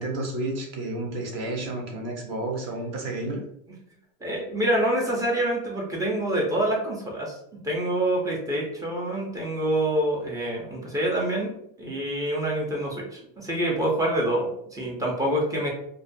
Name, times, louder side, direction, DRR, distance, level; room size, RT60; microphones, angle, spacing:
voice 1, 0.0-3.4, right 2 dB, 40° right, 1 dB, 0.7 m, -31 dB
voice 2, 4.2-7.4 7.6-11.5 11.8-15.7, right 1 dB, 10° right, -2 dB, 0.4 m, -26 dB
2.3 x 2.2 x 2.5 m, 0.72 s
supercardioid pair, 135°, 41 cm